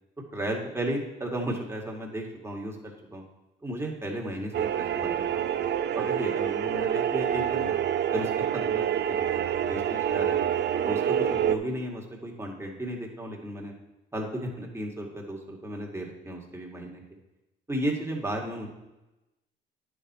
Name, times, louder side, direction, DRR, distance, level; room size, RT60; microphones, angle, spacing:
voice 1, 0.3-3.2 3.6-5.6 5.9-7.8 8.1-10.5 10.8-13.7 14.1-17.0 17.7-18.7, right 1 dB, 15° right, -1 dB, 2.0 m, -34 dB
sound 1, 4.5-11.6, right 9 dB, 60° right, 0.6 m, -27 dB
9.9 x 6.4 x 4.3 m, 0.99 s
cardioid pair, 90°, 20 cm